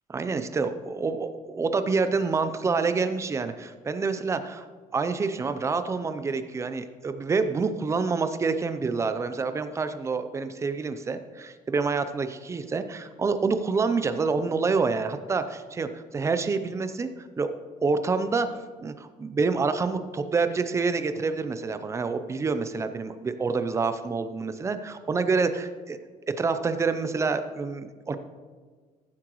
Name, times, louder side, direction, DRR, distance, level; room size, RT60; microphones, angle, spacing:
voice 1, 0.1-4.7 4.9-18.5 18.8-26.0 26.3-28.2, right 4 dB, 20° right, 10 dB, 0.5 m, -27 dB
14.5 x 7.8 x 3.1 m, 1.5 s
cardioid pair, 155°, 14 cm